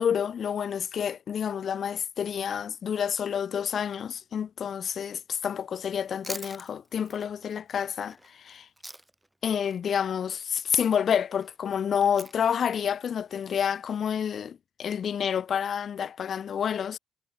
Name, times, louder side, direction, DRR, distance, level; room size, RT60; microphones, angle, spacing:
voice 1, 0.0-8.7 9.4-17.0, left 8 dB, 55° left, 0.3 m, -29 dB
Chewing mastication, 5.9-9.3 9.6-14.0, right 1 dB, 10° right, 0.9 m, -46 dB
cardioid pair, 90°, 0 cm